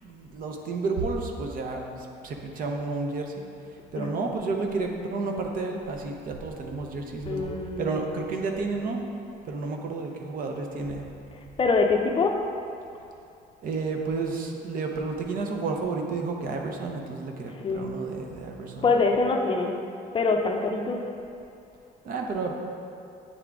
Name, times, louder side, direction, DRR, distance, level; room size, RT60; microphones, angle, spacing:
voice 1, 0.0-1.8 2.2-3.3 3.9-7.5 7.8-9.0 9.4-11.1 13.6-18.9 22.0-22.5, right 3 dB, 55° right, 2 dB, 0.7 m, -31 dB
voice 2, 7.3-8.0 11.6-12.4 17.6-17.9 18.8-19.8 20.1-21.0, left 4 dB, 30° left, 3 dB, 0.5 m, -24 dB
8.4 x 3.6 x 3.5 m, 2.5 s
cardioid pair, 110°, 17 cm